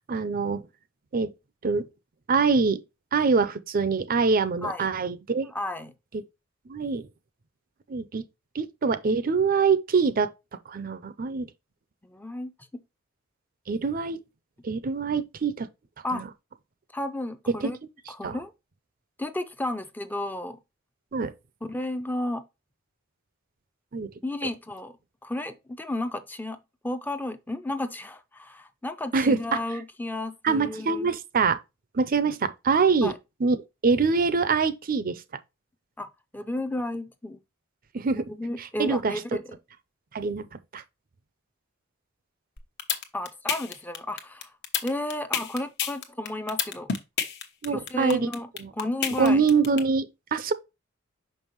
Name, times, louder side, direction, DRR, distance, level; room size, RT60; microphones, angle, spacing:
voice 1, 0.1-0.6 1.1-1.3 1.6-1.9 2.3-2.8 3.1-5.5 6.7-7.0 7.9-8.2 8.5-10.3 10.7-11.5 13.7-14.2 14.6-15.7 16.1-16.3 17.6-17.7 18.2-18.4 21.1-21.3 23.9-24.1 29.1-29.6 30.4-31.6 31.9-33.1 33.4-33.6 33.8-35.2 37.9-38.2 38.8-39.1 40.1-40.5 40.7-40.8 47.6-48.3 48.6-48.7 49.2-50.5, right 4 dB, 45° right, 0.5 m, -24 dB
voice 2, 5.5-5.9 12.0-12.8 16.0-16.2 16.9-17.8 18.1-18.5 19.2-20.6 21.7-22.5 24.2-25.0 25.2-31.1 33.0-33.2 36.0-36.1 36.3-37.4 38.3-39.4 43.1-44.5 44.8-46.9 47.7-49.4, left 1 dB, 10° left, 0.5 m, -33 dB
sound 1, 42.6-49.8, left 8 dB, 55° left, 1.0 m, -28 dB
6.0 x 5.4 x 3.0 m
head